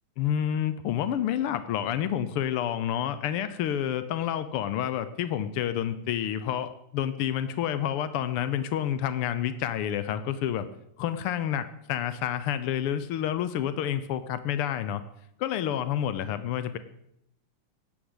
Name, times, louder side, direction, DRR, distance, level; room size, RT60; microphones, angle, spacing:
voice 1, 0.2-10.7 11.0-15.0 15.4-16.8, left 10 dB, 80° left, 12 dB, 1.2 m, -29 dB
17.0 x 9.9 x 8.1 m, 0.79 s
omnidirectional pair, 3.6 m